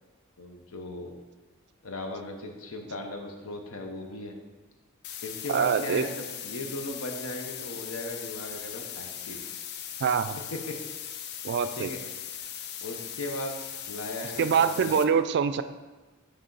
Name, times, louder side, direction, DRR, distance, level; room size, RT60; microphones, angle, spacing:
voice 1, 0.4-1.2 1.8-4.4 5.2-9.5 10.5-10.8 11.8-12.0 12.8-13.6 13.9-15.0, left 1 dB, 80° left, 3 dB, 0.9 m, -37 dB
sound 1, 5.0-15.0, left 9 dB, 55° left, 0.5 m, -39 dB
voice 2, 5.5-6.0 10.0-10.4 11.4-11.9 14.4-15.6, right 7 dB, 55° right, 12 dB, 0.3 m, -24 dB
9.7 x 3.5 x 3.9 m, 1.2 s
head